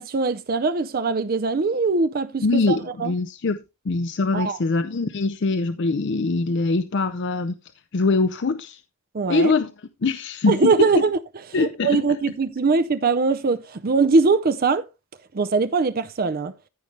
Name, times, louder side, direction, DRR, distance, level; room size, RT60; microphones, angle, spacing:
voice 1, 0.0-3.1 4.3-4.6 9.1-9.5 10.5-11.2 11.6-14.8 15.3-16.5, right 4 dB, 40° right, 0.5 m, -21 dB
voice 2, 2.4-3.6 3.9-7.6 7.9-8.8 9.3-9.7 10.0-10.7 11.5-12.0, left 3 dB, 55° left, 0.5 m, -23 dB
14.0 x 5.3 x 3.2 m
head